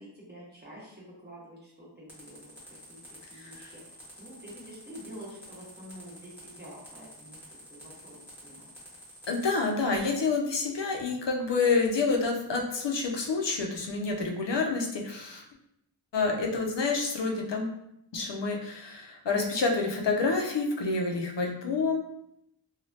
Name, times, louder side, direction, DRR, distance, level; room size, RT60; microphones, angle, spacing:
voice 1, 0.0-3.0 3.3-7.4 7.7-8.6, equal, 20° right, -7 dB, 1.3 m, -48 dB
sound 1, 2.1-9.6, equal, 5° right, 1.4 m, -49 dB
voice 2, 3.3-3.7 9.3-15.4 16.1-17.8 18.1-22.1, left 4 dB, 75° left, 1 dB, 0.6 m, -28 dB
3.1 x 2.3 x 2.7 m, 0.78 s
wide cardioid pair, 70°, 44 cm